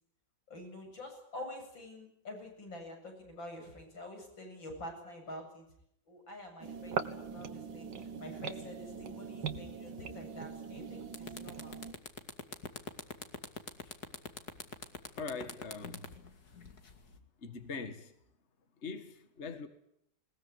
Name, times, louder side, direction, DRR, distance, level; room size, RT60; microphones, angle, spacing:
voice 1, 0.5-5.7 6.1-11.8, left 1 dB, 90° left, 8.5 m, -47 dB
sound 1, 6.6-11.9, right 6 dB, 70° right, 2.1 m, -41 dB
sound 2, 10.6-10.8 11.1-17.2, left 4 dB, 55° left, 2.6 m, -44 dB
voice 2, 15.2-16.1 17.4-18.1 18.8-19.7, left 4 dB, 35° left, 2.0 m, -42 dB
21.0 x 20.5 x 9.6 m
omnidirectional pair, 2.0 m